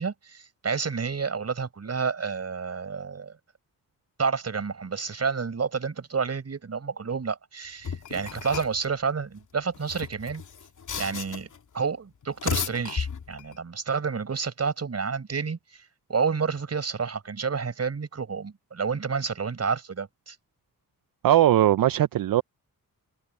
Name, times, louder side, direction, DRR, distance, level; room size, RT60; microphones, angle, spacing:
voice 1, 0.0-3.3 4.2-10.4 11.0-11.5 11.7-15.8 16.1-20.4, right 5 dB, 45° right, 5.7 m, -30 dB
sound 1, 7.8-8.9 9.7-11.6 12.2-13.6, left 6 dB, 60° left, 2.3 m, -33 dB
voice 2, 21.2-22.4, right 12 dB, 75° right, 0.6 m, -19 dB
wide cardioid pair, 115°, 34 cm